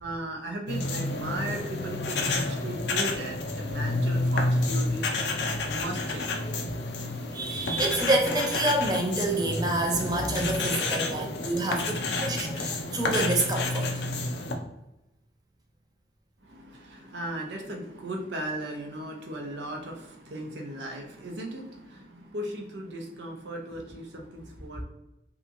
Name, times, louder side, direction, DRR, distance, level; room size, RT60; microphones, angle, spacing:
voice 1, 0.0-6.3 16.4-24.8, right 1 dB, 80° right, 1 dB, 0.6 m, -37 dB
sound 1, 0.7-14.5, left 2 dB, 70° left, 0.4 m, -30 dB
voice 2, 7.3-14.0, right 2 dB, 20° right, 2 dB, 0.4 m, -27 dB
2.8 x 2.5 x 2.5 m, 0.91 s
head